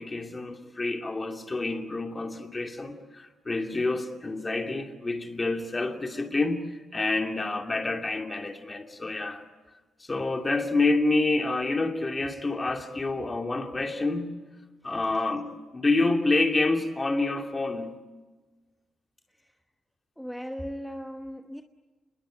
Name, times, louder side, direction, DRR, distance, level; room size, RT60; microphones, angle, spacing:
voice 1, 0.0-9.4 10.0-14.4 14.8-18.0, left 2 dB, 20° left, 2.6 m, -28 dB
voice 2, 20.2-21.6, equal, ahead, 1.1 m, -38 dB
29.0 x 21.5 x 9.1 m
cardioid pair, 130°, 0 cm